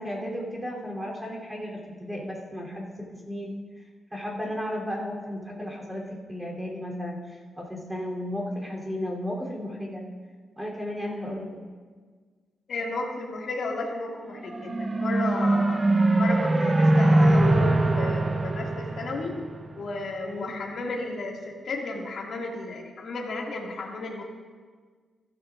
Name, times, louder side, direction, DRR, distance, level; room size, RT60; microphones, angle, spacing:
voice 1, 0.0-3.5 4.1-10.0 10.6-11.6 20.2-20.5, left 1 dB, 10° right, -3 dB, 3.1 m, -34 dB
voice 2, 12.7-15.8 16.2-19.3 19.8-24.2, left 3 dB, 55° left, -1 dB, 2.0 m, -33 dB
sound 1, 14.3-19.9, right 2 dB, 25° right, 0.5 m, -22 dB
15.5 x 12.0 x 2.5 m, 1.5 s
cardioid pair, 125°, 0 cm